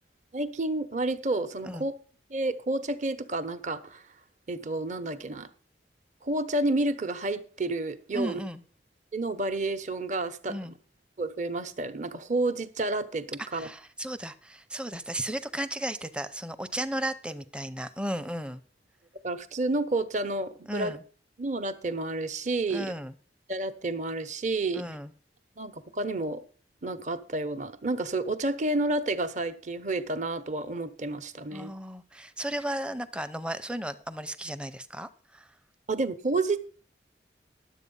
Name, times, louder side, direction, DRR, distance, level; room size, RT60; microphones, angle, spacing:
voice 1, 0.3-1.9 2.3-4.0 4.5-5.5 6.2-8.4 9.1-10.5 11.2-13.7 19.2-20.9 21.4-23.0 23.5-24.8 25.6-26.4 26.8-31.7 35.9-36.6, right 2 dB, 40° right, 11 dB, 0.8 m, -30 dB
voice 2, 8.1-8.6 10.5-10.7 13.4-18.6 20.7-21.0 22.7-23.1 24.7-25.1 31.5-35.5, right 1 dB, 5° right, 11 dB, 0.6 m, -35 dB
11.0 x 7.8 x 5.4 m, 0.40 s
head